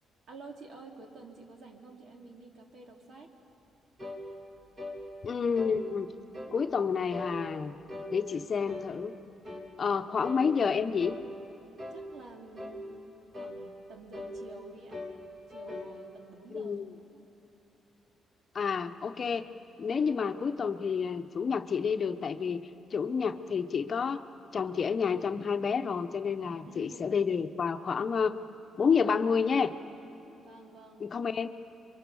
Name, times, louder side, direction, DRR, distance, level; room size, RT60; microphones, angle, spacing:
voice 1, 0.3-3.3 11.9-13.0 13.4-15.1 15.5-16.8 17.1-17.3 26.6-27.1 30.3-31.0, right 3 dB, 65° right, 2 dB, 3.1 m, -50 dB
sound 1, 4.0-4.2 4.8-5.0 5.6-5.8 6.3-6.6 7.1-7.4 7.9-8.1 8.7-8.9 9.4-9.7 10.2-10.5 11.0-11.3 11.8-12.0 12.6-12.8 13.3-13.6 14.1-14.4 14.9-15.2 15.5-15.9, left 2 dB, 35° right, 3.7 m, -40 dB
voice 2, 5.2-6.1 6.5-7.8 8.1-9.1 9.8-11.2 16.5-16.8 18.5-19.5 19.8-22.6 22.9-24.2 24.5-28.4 28.8-29.7 31.0-31.5, left 6 dB, 45° left, 8 dB, 0.9 m, -29 dB
26.5 x 23.5 x 7.1 m, 3.0 s
cardioid pair, 90°, 0 cm